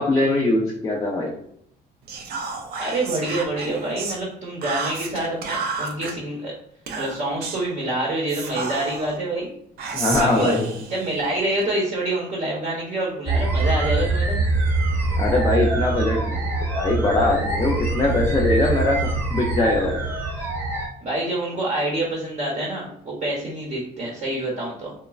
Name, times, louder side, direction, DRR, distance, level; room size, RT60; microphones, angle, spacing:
voice 1, 0.0-1.3 9.9-10.6 15.2-16.5 16.7-19.0 19.3-20.0, left 2 dB, 20° left, -2 dB, 0.4 m, -21 dB
Whispering, 2.1-4.2 4.6-6.1 6.9-7.7 8.3-9.2 9.8-11.7, right 4 dB, 65° right, 0.5 m, -31 dB
voice 2, 2.8-6.5 7.0-9.5 10.2-10.6 10.9-14.4 21.0-24.9, right 2 dB, 40° right, -3 dB, 0.8 m, -26 dB
sound 1, 13.3-20.9, right 2 dB, 10° right, 0.9 m, -24 dB
3.1 x 2.1 x 2.3 m, 0.67 s
cardioid pair, 110°, 17 cm